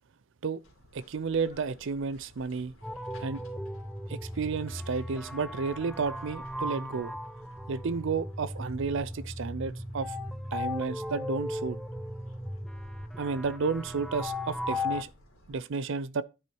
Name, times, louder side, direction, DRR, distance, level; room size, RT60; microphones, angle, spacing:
sound 1, 0.6-15.6, equal, 80° left, 2.9 m, -57 dB
voice 1, 0.9-2.7 3.2-3.4 4.1-7.1 7.7-10.1 10.5-11.8 13.2-15.1 15.5-16.2, right 5 dB, 60° right, 0.5 m, -32 dB
sound 2, 2.8-15.0, left 1 dB, ahead, 0.6 m, -37 dB
10.0 x 4.5 x 4.5 m
head